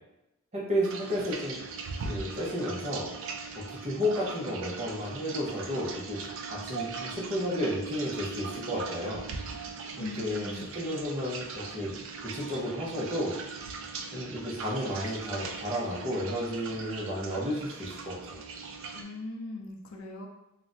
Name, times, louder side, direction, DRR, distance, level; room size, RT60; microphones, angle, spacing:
voice 1, 0.5-1.5 2.0-3.1 3.5-6.2 6.5-9.3 9.9-11.9 12.2-13.4 14.1-18.4, equal, 30° right, -4 dB, 0.7 m, -32 dB
sound 1, 0.8-19.0, right 4 dB, 60° right, 0.3 m, -40 dB
voice 2, 10.0-10.7 18.9-20.3, left 2 dB, 65° left, 1 dB, 0.5 m, -39 dB
2.4 x 2.1 x 3.8 m, 0.89 s
head